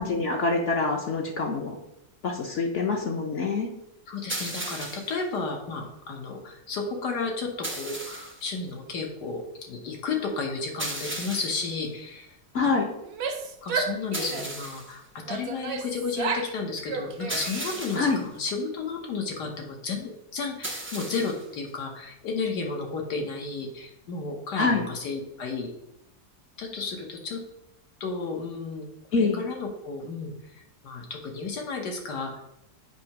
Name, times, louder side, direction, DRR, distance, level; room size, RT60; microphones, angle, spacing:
voice 1, 0.0-1.8 2.2-3.7 12.5-12.9 17.9-18.2 24.6-24.9 29.1-29.4, left 4 dB, 55° left, 0 dB, 1.0 m, -25 dB
voice 2, 4.1-12.3 12.6-12.7 13.6-25.7 26.6-27.4 28.0-28.9 29.2-30.3 30.8-32.4, left 4 dB, 85° left, 2 dB, 1.8 m, -33 dB
sound 1, 4.3-5.2 7.6-8.5 10.8-11.7 14.1-15.0 17.3-18.2 20.6-21.5, right 1 dB, 15° right, 0.4 m, -35 dB
Female speech woman speaking / Yell, 13.0-14.7 15.3-16.6 16.8-17.8, right 5 dB, 70° right, 1.3 m, -32 dB
7.7 x 2.9 x 5.8 m, 0.83 s
omnidirectional pair, 1.7 m